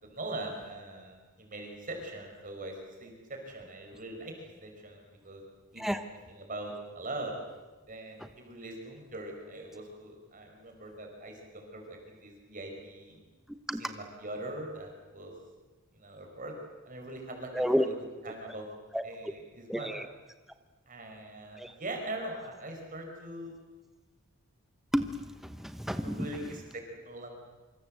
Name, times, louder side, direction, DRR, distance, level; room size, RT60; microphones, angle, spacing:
voice 1, 0.0-5.4 5.7-6.0 6.3-7.3 7.9-13.2 13.8-15.3 15.9-16.6 16.9-17.9 18.2-18.7 19.0-19.9 20.9-23.5 26.0-27.3, right 1 dB, 35° right, 2 dB, 5.6 m, -42 dB
voice 2, 17.5-17.9 18.9-19.0 19.7-20.1 21.5-21.7 24.9-26.5, equal, ahead, 8 dB, 1.0 m, -31 dB
27.0 x 25.5 x 7.9 m, 1.3 s
head